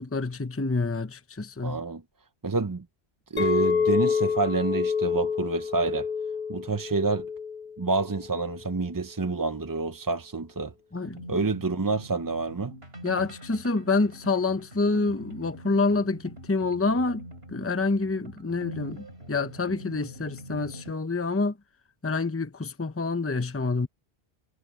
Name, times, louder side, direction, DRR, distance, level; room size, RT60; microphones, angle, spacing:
voice 1, 0.0-1.8 10.9-11.4 13.0-21.6 22.0-23.9, left 3 dB, 15° left, 0.9 m, -27 dB
voice 2, 1.6-2.0 2.4-2.8 3.3-6.1 6.5-7.3 7.8-10.7 11.3-12.7, right 3 dB, 25° right, 0.6 m, -28 dB
Chink clink, 3.4-8.6, left 6 dB, 55° left, 3.6 m, -28 dB
sound 1, 11.0-20.9, right 1 dB, 80° right, 6.3 m, -44 dB
omnidirectional pair, 1.0 m